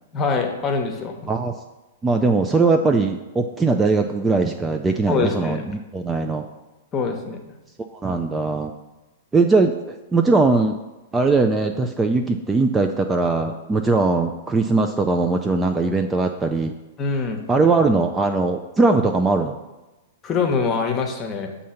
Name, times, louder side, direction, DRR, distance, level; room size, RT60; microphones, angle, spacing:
voice 1, 0.1-1.3 5.1-5.6 6.9-7.4 17.0-17.4 20.2-21.5, left 5 dB, 25° left, 4 dB, 0.9 m, -24 dB
voice 2, 2.0-6.5 8.0-8.7 9.3-10.8 11.1-16.7 17.5-19.6, right 3 dB, 15° right, 4 dB, 0.4 m, -20 dB
7.2 x 2.8 x 5.7 m, 1.1 s
figure-of-eight pair, 105°, 0 cm